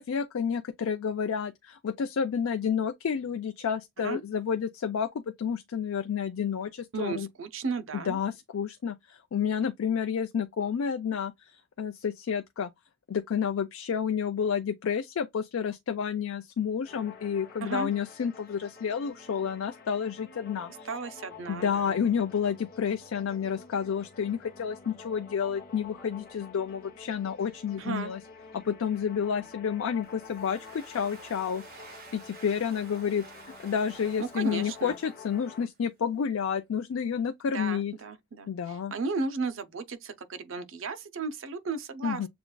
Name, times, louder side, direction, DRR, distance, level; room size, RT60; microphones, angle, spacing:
voice 1, 0.0-7.3 8.1-12.7 13.1-20.9 21.5-28.2 28.5-33.2 33.6-37.9 38.5-38.9 42.0-42.3, left 7 dB, 75° left, 0.4 m, -30 dB
voice 2, 6.9-8.2 17.6-17.9 20.8-22.0 27.8-28.1 34.2-35.0 37.5-42.3, right 4 dB, 65° right, 0.6 m, -34 dB
sound 1, 16.8-35.7, left 5 dB, 45° left, 0.8 m, -49 dB
Domestic sounds home sounds, 30.0-35.7, right 4 dB, 45° right, 1.4 m, -52 dB
6.9 x 2.3 x 2.2 m
head